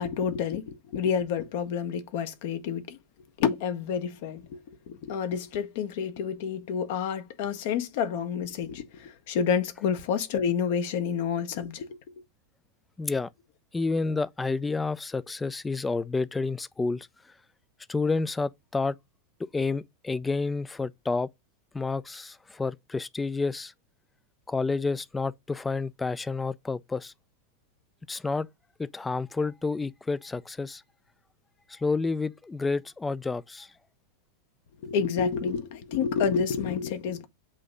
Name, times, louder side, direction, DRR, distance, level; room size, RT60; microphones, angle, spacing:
voice 1, 0.0-3.0 3.4-12.0 34.8-37.2, left 7 dB, 50° left, 0.8 m, -29 dB
voice 2, 13.0-13.3 13.7-17.3 17.9-19.0 19.5-21.3 21.7-23.7 24.5-27.1 28.1-28.5 28.8-30.8 31.7-33.7, left 3 dB, 10° left, 0.3 m, -29 dB
7.5 x 2.9 x 5.1 m
figure-of-eight pair, 90°, 0 cm